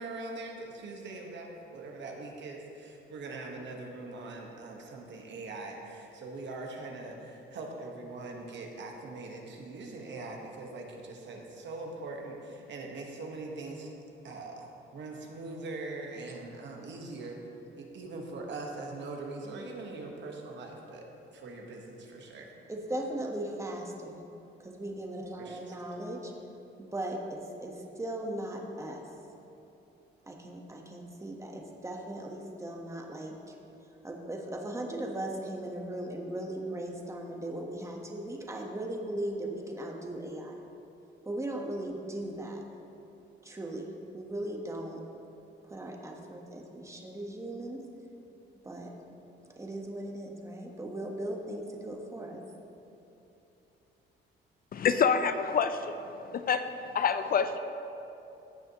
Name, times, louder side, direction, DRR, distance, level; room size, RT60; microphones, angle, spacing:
voice 1, 0.0-13.9 14.2-17.4 17.8-21.0 21.3-22.5 25.4-25.8, right 2 dB, 65° right, 1 dB, 1.4 m, -42 dB
voice 2, 22.7-24.2 24.6-26.3 26.8-29.0 30.3-33.5 34.0-40.6 41.2-42.6 43.4-45.0 45.6-47.8 48.6-48.9 49.6-52.4, right 1 dB, 15° right, 1 dB, 1.3 m, -38 dB
voice 3, 54.7-55.9 56.3-56.7 56.9-57.6, left 6 dB, 50° left, 10 dB, 0.5 m, -26 dB
15.5 x 6.5 x 3.0 m, 2.9 s
cardioid pair, 90°, 20 cm